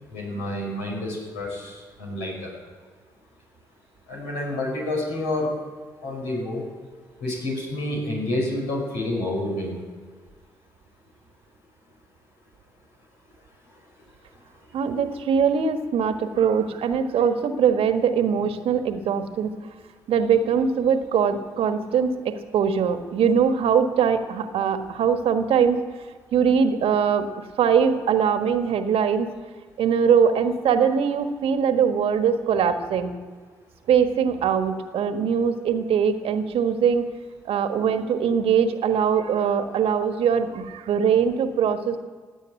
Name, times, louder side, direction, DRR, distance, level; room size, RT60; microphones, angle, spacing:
voice 1, 0.1-2.5 4.1-5.5 6.0-6.6 7.2-9.8, left 1 dB, 75° left, -2 dB, 6.1 m, -29 dB
voice 2, 14.7-19.5 20.1-25.8 26.3-29.3 29.8-33.2 33.9-37.0 37.4-42.0, right 7 dB, 60° right, 8 dB, 1.4 m, -22 dB
17.0 x 9.1 x 8.9 m, 1.5 s
hypercardioid pair, 45°, 11 cm